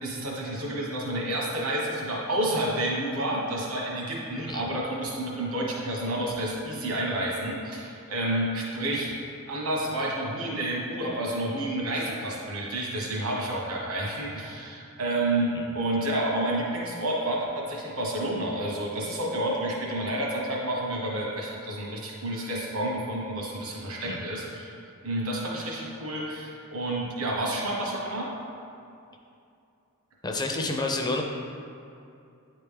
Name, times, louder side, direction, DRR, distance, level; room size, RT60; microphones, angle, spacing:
voice 1, 0.0-9.1 9.5-24.7 25.0-28.3, right 1 dB, 75° right, -3 dB, 1.3 m, -30 dB
voice 2, 30.2-31.2, left 2 dB, 20° left, 2 dB, 0.4 m, -30 dB
9.3 x 3.3 x 3.4 m, 2.6 s
head